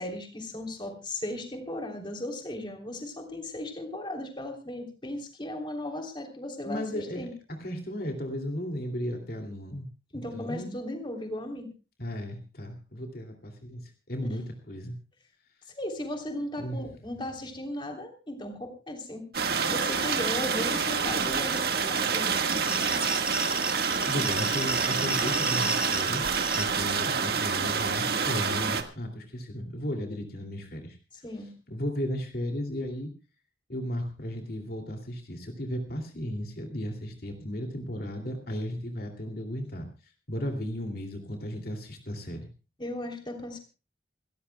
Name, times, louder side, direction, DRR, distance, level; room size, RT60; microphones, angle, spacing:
voice 1, 0.0-7.3 10.1-11.7 15.8-19.2 19.7-22.6 31.2-31.5 42.8-43.6, left 1 dB, 25° left, 3 dB, 3.4 m, -36 dB
voice 2, 6.6-7.3 7.6-9.9 10.1-10.8 12.0-14.9 16.6-16.8 24.1-31.0 31.7-33.1 33.7-39.9 40.3-42.5, equal, 55° left, 3 dB, 2.7 m, -35 dB
sound 1, 19.3-28.8, right 5 dB, 60° right, 1.7 m, -27 dB
sound 2, 21.5-26.7, right 2 dB, 5° right, 1.2 m, -32 dB
28.0 x 14.0 x 2.3 m, 0.33 s
head